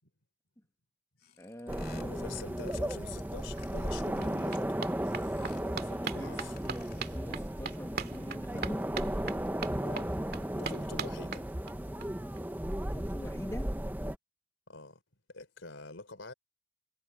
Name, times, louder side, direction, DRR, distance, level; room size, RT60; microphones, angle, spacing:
sound 1, 1.2-4.6 5.0-5.8 6.3-7.3, left 8 dB, 50° left, 3.4 m, -58 dB
voice 1, 1.4-2.5 5.8-8.8 12.8-13.7, equal, 15° left, 1.7 m, -45 dB
sound 2, 1.7-14.2, right 1 dB, 10° right, 0.9 m, -35 dB
voice 2, 1.9-4.7 5.6-6.6 8.5-8.7 9.8-10.2 10.5-11.4 14.7-15.0 15.3-16.3, left 3 dB, 75° left, 3.6 m, -46 dB
sound 3, 3.3-3.4 3.6-12.1 12.4-12.5 12.7-12.8 13.1-13.2, right 5 dB, 50° right, 2.2 m, -42 dB
head